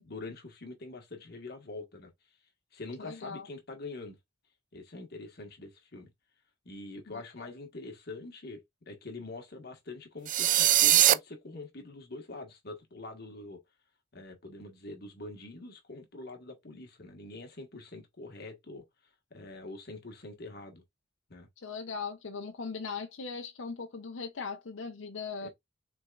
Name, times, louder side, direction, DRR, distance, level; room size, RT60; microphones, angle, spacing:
voice 1, 0.0-2.1 2.7-4.2 4.7-6.1 6.6-8.6 8.9-13.6 14.1-18.8 19.3-20.8 21.3-21.5 25.4-25.5, left 2 dB, 55° left, 1.5 m, -44 dB
voice 2, 3.0-3.5 7.1-7.5 21.6-25.5, left 5 dB, 80° left, 0.7 m, -39 dB
sound 1, 10.3-11.1, right 13 dB, 40° right, 0.3 m, -21 dB
6.0 x 3.6 x 2.4 m
head